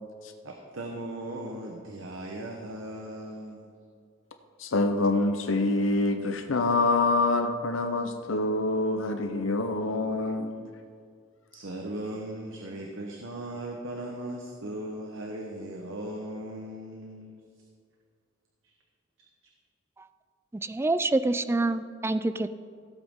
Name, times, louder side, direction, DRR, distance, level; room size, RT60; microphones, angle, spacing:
voice 1, 0.4-3.7 11.5-17.4, right 1 dB, 85° right, 1 dB, 1.0 m, -38 dB
voice 2, 4.6-10.7, left 2 dB, 85° left, 7 dB, 0.7 m, -26 dB
voice 3, 20.6-22.5, right 2 dB, 15° right, 13 dB, 0.3 m, -26 dB
16.0 x 8.0 x 3.7 m, 2.2 s
head